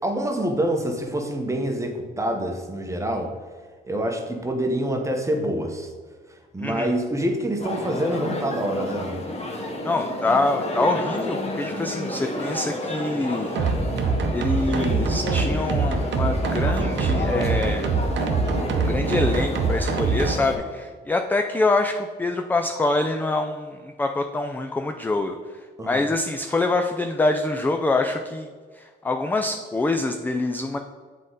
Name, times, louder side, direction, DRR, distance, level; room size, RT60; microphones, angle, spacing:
voice 1, 0.0-3.3 3.9-5.9 6.5-9.2 25.8-26.0, right 1 dB, 15° right, 3 dB, 0.9 m, -26 dB
voice 2, 6.6-6.9 9.8-13.5 14.3-17.9 18.8-25.4 25.8-28.5 28.8-30.8, left 2 dB, 10° left, 5 dB, 0.3 m, -25 dB
sound 1, 7.6-20.6, left 1 dB, 30° left, 1.1 m, -31 dB
sound 2, 13.6-20.4, right 4 dB, 65° right, 0.7 m, -24 dB
7.5 x 3.7 x 3.9 m, 1.5 s
cardioid pair, 90°, 20 cm